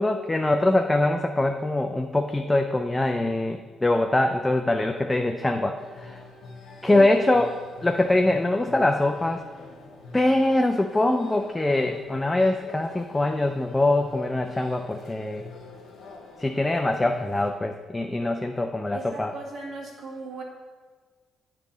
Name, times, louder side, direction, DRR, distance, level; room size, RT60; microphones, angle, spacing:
voice 1, 0.0-6.2 6.8-7.5 7.8-9.4 10.1-15.4 16.4-19.3, left 2 dB, 15° left, 5 dB, 0.4 m, -23 dB
sound 1, 5.8-17.5, left 3 dB, 65° left, 1.1 m, -45 dB
voice 2, 18.9-20.4, right 4 dB, 55° right, -1 dB, 1.5 m, -37 dB
8.4 x 3.3 x 5.0 m, 1.5 s
cardioid pair, 90°, 0 cm